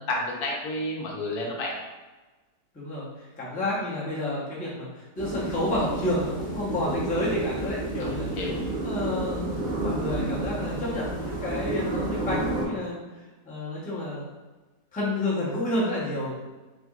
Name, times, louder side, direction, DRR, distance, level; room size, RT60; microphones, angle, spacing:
voice 1, 0.0-1.8 8.0-8.6, left 1 dB, 75° left, -2 dB, 1.3 m, -31 dB
voice 2, 2.7-8.3 8.8-9.5 9.8-12.9 13.4-14.3 14.9-16.3, left 1 dB, 10° left, -7 dB, 0.5 m, -30 dB
sound 1, 5.2-12.7, right 2 dB, 45° right, 0.7 m, -31 dB
3.6 x 3.4 x 2.3 m, 1.2 s
omnidirectional pair, 1.7 m